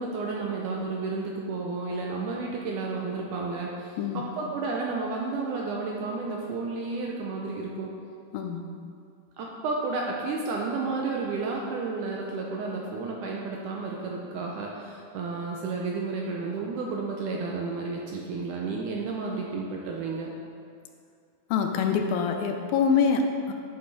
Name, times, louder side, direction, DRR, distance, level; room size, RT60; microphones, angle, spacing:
voice 1, 0.0-7.9 9.4-20.3, right 3 dB, 75° right, -1 dB, 2.0 m, -32 dB
voice 2, 8.3-8.7 21.5-23.5, left 6 dB, 80° left, 4 dB, 2.4 m, -25 dB
11.0 x 6.8 x 4.2 m, 2.3 s
omnidirectional pair, 4.3 m